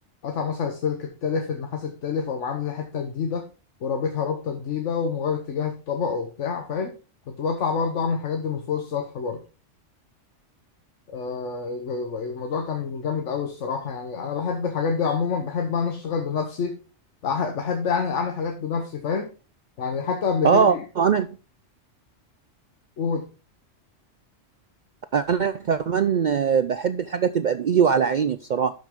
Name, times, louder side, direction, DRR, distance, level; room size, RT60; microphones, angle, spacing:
voice 1, 0.2-3.5 3.8-7.0 7.3-9.4 11.1-16.8 17.2-19.3 19.8-20.8 23.0-23.3, left 6 dB, 80° left, 4 dB, 1.4 m, -27 dB
voice 2, 20.4-21.3 25.1-28.7, right 7 dB, 60° right, 11 dB, 0.5 m, -21 dB
12.0 x 6.0 x 3.7 m, 0.33 s
omnidirectional pair, 1.2 m